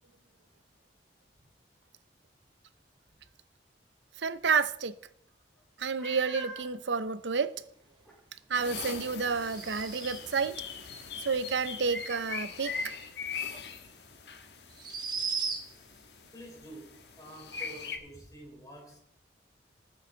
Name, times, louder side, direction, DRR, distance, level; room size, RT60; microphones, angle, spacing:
voice 1, 4.2-4.9 5.8-7.5 8.5-10.6 11.2-12.9, right 5 dB, 90° right, 0.7 m, -30 dB
Meow, 6.0-6.7 7.5-7.6 8.0-8.2 12.1-12.2, equal, 5° left, 4.0 m, -43 dB
sound 1, 8.5-18.0, left 5 dB, 75° left, 1.4 m, -41 dB
sound 2, 9.3-10.4 13.5-13.6 14.7-16.0, right 5 dB, 25° right, 1.3 m, -36 dB
voice 2, 16.3-19.0, right 1 dB, 20° left, 4.0 m, -49 dB
19.5 x 8.1 x 3.9 m
head